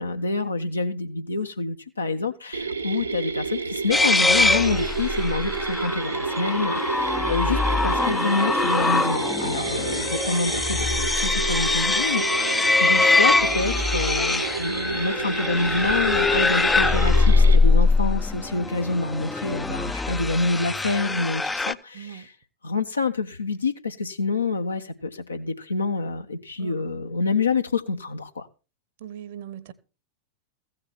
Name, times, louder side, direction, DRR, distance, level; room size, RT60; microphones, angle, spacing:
voice 1, 0.0-22.3 22.6-28.5, left 3 dB, 80° left, 1.1 m, -27 dB
Mechanisms, 2.5-17.6, right 4 dB, 85° right, 1.3 m, -30 dB
sound 1, 3.9-21.7, left 3 dB, 10° left, 0.5 m, -22 dB
voice 2, 7.2-7.9 9.8-10.3 18.4-18.8 21.9-22.3 26.6-27.1 29.0-29.7, right 10 dB, 55° right, 1.1 m, -42 dB
15.5 x 6.6 x 5.9 m
figure-of-eight pair, 90°, 0 cm